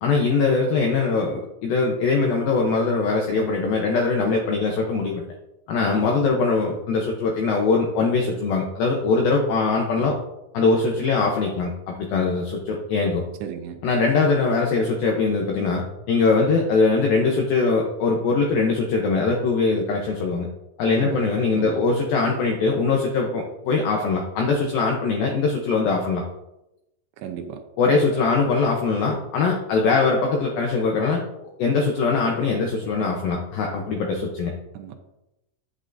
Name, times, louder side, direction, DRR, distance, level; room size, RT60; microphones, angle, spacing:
voice 1, 0.0-5.2 5.7-10.1 10.5-13.2 13.8-20.5 20.8-26.2 27.8-31.2 31.6-34.5, left 4 dB, 80° left, 0 dB, 2.1 m, -22 dB
voice 2, 13.4-13.8 21.0-21.3 21.5-21.8 27.2-27.6 34.7-35.0, right 9 dB, 85° right, 5 dB, 2.9 m, -35 dB
9.6 x 8.0 x 2.6 m, 0.90 s
omnidirectional pair, 5.4 m